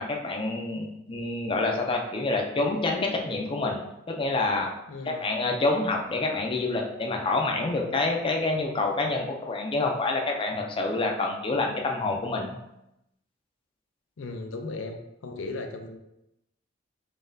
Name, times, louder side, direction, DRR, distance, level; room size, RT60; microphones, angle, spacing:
voice 1, 0.0-3.8 4.1-4.7 5.1-12.5, left 2 dB, 25° left, 1 dB, 0.4 m, -27 dB
voice 2, 4.9-5.2 14.2-16.0, left 3 dB, 90° left, 5 dB, 0.5 m, -36 dB
3.9 x 3.7 x 2.6 m, 0.86 s
head